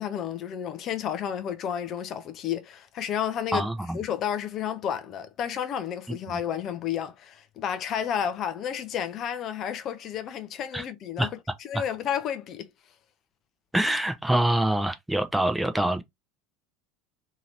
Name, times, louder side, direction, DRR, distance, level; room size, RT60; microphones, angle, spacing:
voice 1, 0.0-3.7 3.9-11.3 11.6-12.7, left 9 dB, 40° left, 0.5 m, -31 dB
voice 2, 3.5-4.0 10.7-10.8 11.2-11.3 11.7-11.8 13.7-16.0, right 1 dB, 5° right, 0.5 m, -25 dB
2.8 x 2.8 x 2.6 m
figure-of-eight pair, 75°, 0 cm